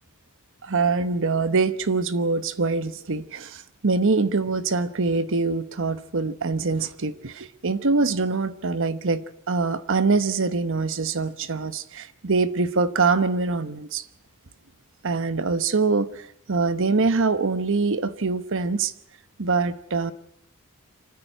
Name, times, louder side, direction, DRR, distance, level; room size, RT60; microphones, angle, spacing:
voice 1, 0.6-14.0 15.0-18.9 19.4-20.1, right 4 dB, 60° right, 1.0 m, -24 dB
26.0 x 14.5 x 9.2 m
head